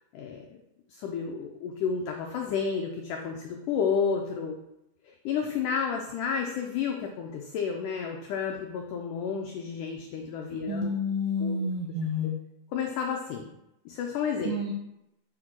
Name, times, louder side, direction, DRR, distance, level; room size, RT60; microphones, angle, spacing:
voice 1, 0.1-0.6 0.9-4.6 5.0-10.9 11.4-11.6 12.2-12.3 12.7-13.5 13.9-14.5, left 6 dB, 90° left, 1 dB, 1.8 m, -31 dB
voice 2, 10.7-12.3 14.4-14.7, left 2 dB, 75° right, 0 dB, 2.0 m, -29 dB
7.2 x 3.7 x 6.1 m, 0.87 s
omnidirectional pair, 4.5 m